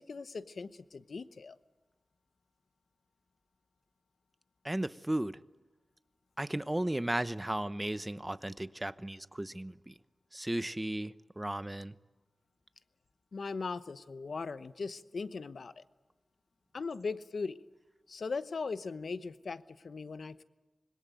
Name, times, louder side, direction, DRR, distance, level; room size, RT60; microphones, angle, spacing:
voice 1, 0.0-1.6 13.3-15.8 16.7-17.6 18.1-20.4, left 4 dB, 75° left, 13 dB, 1.0 m, -39 dB
voice 2, 4.6-5.4 6.4-9.9 10.3-11.9, right 1 dB, 15° right, 14 dB, 1.0 m, -35 dB
26.0 x 21.0 x 9.2 m, 1.2 s
wide cardioid pair, 60°, 0 cm